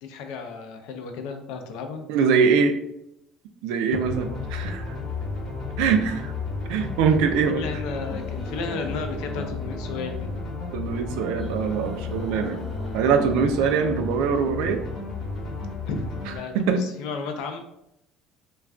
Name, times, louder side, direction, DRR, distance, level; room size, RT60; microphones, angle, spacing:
voice 1, 0.0-2.0 7.2-10.3 15.9-17.6, left 4 dB, 70° left, 6 dB, 0.4 m, -34 dB
voice 2, 2.1-2.8 3.6-5.0 5.8-6.3 6.7-7.6 10.7-12.7 12.9-14.8 16.5-16.8, right 6 dB, 80° right, 7 dB, 0.3 m, -23 dB
sound 1, 4.0-16.4, left 3 dB, 35° left, 0.8 m, -33 dB
sound 2, 8.0-10.7 11.4-14.9, equal, 5° right, 0.7 m, -43 dB
2.4 x 2.2 x 3.4 m, 0.80 s
cardioid pair, 170°, 0 cm